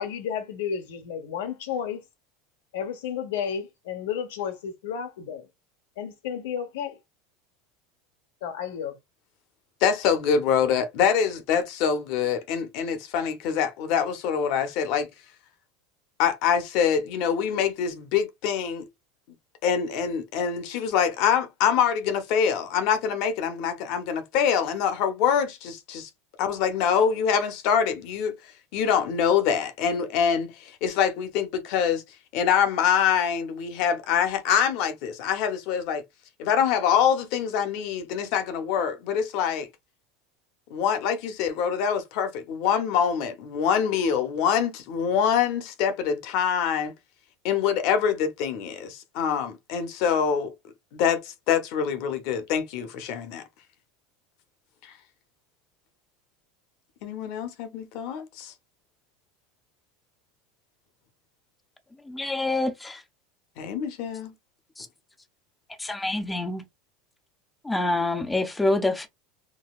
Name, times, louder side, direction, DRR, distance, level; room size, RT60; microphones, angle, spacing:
voice 1, 0.0-2.0 2.7-5.5 6.0-7.0 8.4-9.0, left 8 dB, 90° left, 0.9 m, -32 dB
voice 2, 9.8-15.1 16.2-18.9 19.6-26.1 26.4-28.3 28.7-32.0 32.3-36.0 36.4-39.7 40.7-46.9 47.4-50.5 50.9-53.4 57.0-58.5 63.6-64.3, left 7 dB, 60° left, 0.8 m, -25 dB
voice 3, 62.0-63.0 64.8-64.9 65.8-66.6 67.6-69.1, left 2 dB, 10° left, 0.5 m, -26 dB
3.9 x 2.2 x 2.3 m
supercardioid pair, 135°, 0 cm